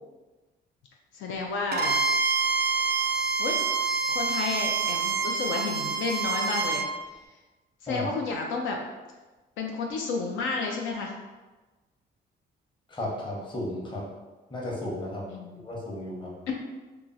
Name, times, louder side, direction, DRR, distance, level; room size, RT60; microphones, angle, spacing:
voice 1, 1.1-2.0 3.4-3.6 4.1-6.9 7.8-8.8 9.6-11.1 15.3-15.7 16.5-16.6, left 4 dB, 80° left, 1 dB, 0.4 m, -31 dB
Bowed string instrument, 1.7-6.9, right 4 dB, 55° right, 0.4 m, -27 dB
voice 2, 12.9-14.0 14.5-15.2 15.6-16.3, left 1 dB, 25° left, -3 dB, 0.8 m, -34 dB
2.9 x 2.3 x 2.5 m, 1.2 s
cardioid pair, 90°, 20 cm